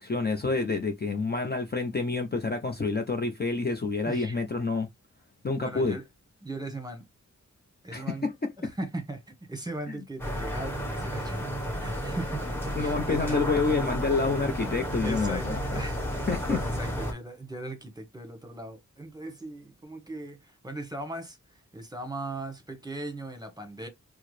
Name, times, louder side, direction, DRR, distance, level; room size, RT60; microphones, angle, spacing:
voice 1, 0.0-4.9 5.4-6.0 7.9-8.5 12.8-15.8 16.3-16.6, left 3 dB, 35° left, 0.6 m, -28 dB
voice 2, 4.1-4.4 5.6-6.0 6.4-7.0 7.8-8.3 8.6-11.5 11.8-12.4 12.8-13.6 15.0-23.9, right 2 dB, 15° right, 1.1 m, -38 dB
sound 1, 10.2-17.1, equal, 5° left, 1.0 m, -32 dB
4.5 x 2.0 x 3.2 m
wide cardioid pair, 95°, 30 cm